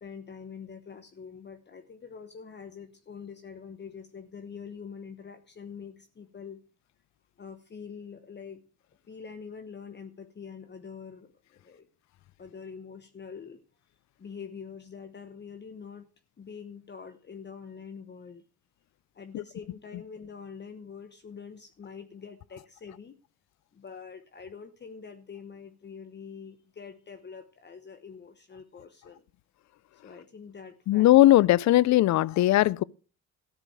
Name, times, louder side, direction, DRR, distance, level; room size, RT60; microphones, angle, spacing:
voice 1, 0.0-6.6 7.4-8.6 9.1-11.9 12.4-13.6 14.2-16.1 16.4-18.4 19.1-23.2 23.7-29.3 30.0-31.1, left 6 dB, 35° left, 1.1 m, -45 dB
voice 2, 30.9-32.8, left 15 dB, 65° left, 0.5 m, -19 dB
13.5 x 5.0 x 7.8 m
cardioid pair, 90°, 30 cm